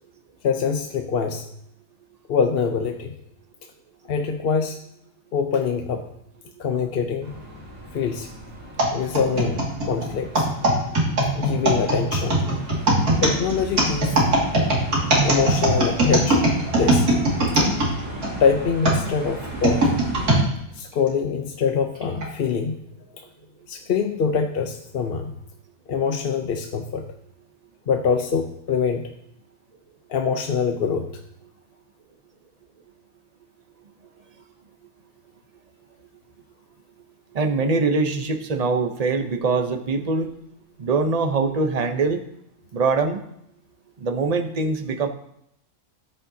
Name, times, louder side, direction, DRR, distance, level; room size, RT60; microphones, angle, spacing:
voice 1, 0.4-1.5 2.3-3.2 4.1-4.8 5.3-6.0 6.6-7.3 7.9-8.3 8.9-10.5 11.3-12.6 13.2-14.2 15.2-16.4 16.8-17.1 18.4-20.0 20.7-22.8 23.1-23.2 23.7-25.3 25.9-27.0 27.9-29.1 30.1-31.1, left 6 dB, 50° left, 5 dB, 0.8 m, -24 dB
sound 1, 7.2-20.4, right 1 dB, 65° right, 3.4 m, -36 dB
sound 2, 8.8-18.3 18.8-20.4 21.1-21.2 22.0-22.3, right 1 dB, 85° right, 2.7 m, -20 dB
voice 2, 37.3-40.3 40.8-42.2 42.7-43.2 44.0-45.1, right 4 dB, 35° right, 6 dB, 0.7 m, -23 dB
13.5 x 8.8 x 2.8 m, 0.75 s
omnidirectional pair, 1.5 m